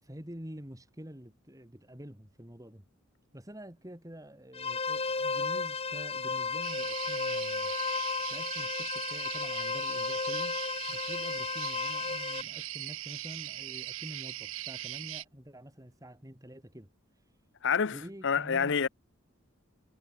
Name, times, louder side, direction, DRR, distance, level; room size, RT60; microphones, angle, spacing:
voice 1, 0.0-2.9 3.3-7.7 8.3-10.6 10.9-16.9 17.9-18.8, equal, 15° right, 3.4 m, -47 dB
sound 1, 4.5-12.4, left 4 dB, 25° left, 1.5 m, -33 dB
sound 2, 6.6-15.2, right 14 dB, 65° right, 0.8 m, -40 dB
voice 2, 17.6-18.9, left 6 dB, 55° left, 0.7 m, -28 dB
head